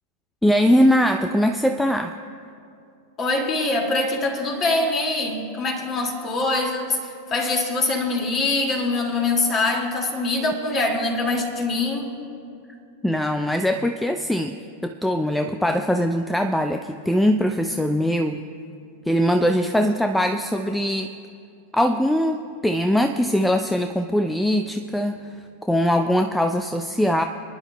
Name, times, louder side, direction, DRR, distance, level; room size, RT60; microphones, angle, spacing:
voice 1, 0.4-2.2 13.0-14.6 14.8-18.4 19.1-21.1 21.7-25.3 25.6-27.2, equal, 5° left, 7 dB, 0.4 m, -21 dB
voice 2, 3.2-12.1, left 2 dB, 30° left, 2 dB, 2.2 m, -24 dB
27.5 x 10.5 x 2.3 m, 2.5 s
figure-of-eight pair, 90°, 0 cm